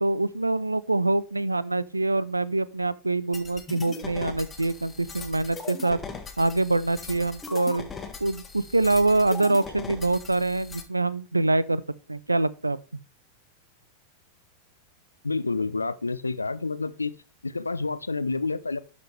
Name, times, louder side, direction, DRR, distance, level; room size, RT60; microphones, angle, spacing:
voice 1, 0.0-6.0 6.4-7.9 8.2-11.8 12.1-12.8, right 2 dB, 85° right, 0.4 m, -25 dB
sound 1, 3.3-10.8, left 4 dB, 15° left, 1.4 m, -39 dB
voice 2, 15.2-17.1 17.4-18.8, left 3 dB, 80° left, 0.4 m, -29 dB
11.5 x 5.2 x 3.3 m
figure-of-eight pair, 90°, 0 cm